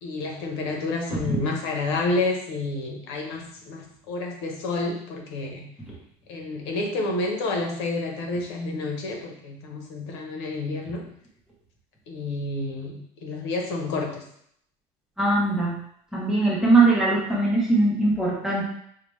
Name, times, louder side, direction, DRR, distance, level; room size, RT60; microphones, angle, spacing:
voice 1, 0.0-5.7 6.3-11.1 12.1-14.2, left 2 dB, 85° left, 2 dB, 0.8 m, -29 dB
voice 2, 15.2-15.8 16.1-18.7, right 2 dB, 5° right, -5 dB, 0.7 m, -21 dB
4.7 x 2.1 x 3.1 m, 0.68 s
cardioid pair, 175°, 14 cm